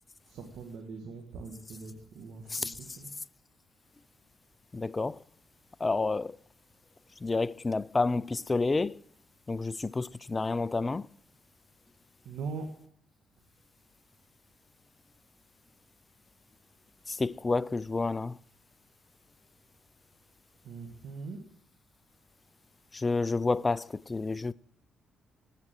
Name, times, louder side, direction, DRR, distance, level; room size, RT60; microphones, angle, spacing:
voice 1, 0.3-3.1 12.2-12.7 20.6-21.4, right 4 dB, 75° right, 1.7 m, -41 dB
voice 2, 4.7-5.2 5.8-6.3 7.2-8.9 9.5-11.0 17.1-18.4 22.9-24.5, left 3 dB, 25° left, 0.4 m, -29 dB
9.7 x 8.4 x 9.0 m
cardioid pair, 90°, 0 cm